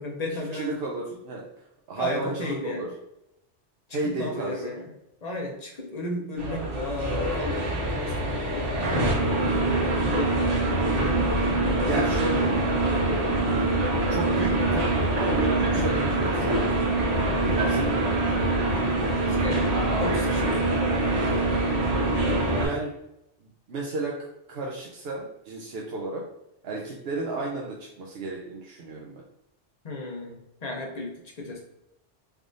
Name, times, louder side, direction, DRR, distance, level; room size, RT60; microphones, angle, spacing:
voice 1, 0.0-0.7 2.0-2.9 4.0-4.9 5.2-8.7 9.3-10.7 19.0-19.6 20.0-20.7 29.8-31.6, left 2 dB, 40° left, 0 dB, 0.8 m, -34 dB
voice 2, 0.5-1.4 1.9-2.9 3.9-4.7 11.8-12.5 12.8-13.4 14.1-16.6 17.4-18.2 22.5-22.9 23.4-26.2 26.6-29.2, right 2 dB, 65° right, -2 dB, 0.8 m, -33 dB
sound 1, 6.4-22.7, right 2 dB, 85° right, 1.3 m, -24 dB
3.4 x 3.3 x 2.5 m, 0.84 s
omnidirectional pair, 1.2 m